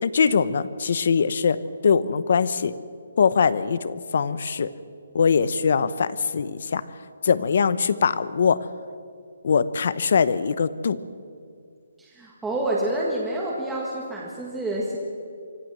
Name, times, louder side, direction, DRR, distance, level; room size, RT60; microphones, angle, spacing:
voice 1, 0.0-1.6 1.8-2.7 3.2-4.7 5.1-6.8 7.2-8.6 9.4-11.0, left 6 dB, 45° left, 16 dB, 0.8 m, -22 dB
voice 2, 12.0-15.0, right 1 dB, 5° right, -5 dB, 1.6 m, -28 dB
25.0 x 14.0 x 7.6 m, 2.3 s
hypercardioid pair, 175°, 0 cm